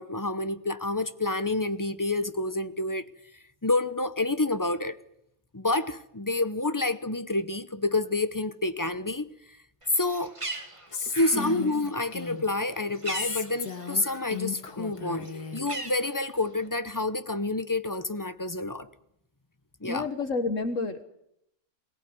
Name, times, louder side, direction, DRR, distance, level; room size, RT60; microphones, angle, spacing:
voice 1, 0.0-3.1 3.6-5.0 5.5-9.3 10.0-10.3 11.2-18.9 19.8-20.1, left 2 dB, 15° left, 0.7 m, -28 dB
Bird, 9.8-14.4 14.7-16.7, right 2 dB, 20° right, 2.0 m, -40 dB
Female speech woman speaking, 10.9-12.6 13.1-15.6, left 7 dB, 85° left, 2.4 m, -35 dB
voice 2, 11.1-11.6 15.3-15.4 19.8-21.0, left 3 dB, 55° left, 1.6 m, -31 dB
22.5 x 18.0 x 9.6 m
omnidirectional pair, 1.6 m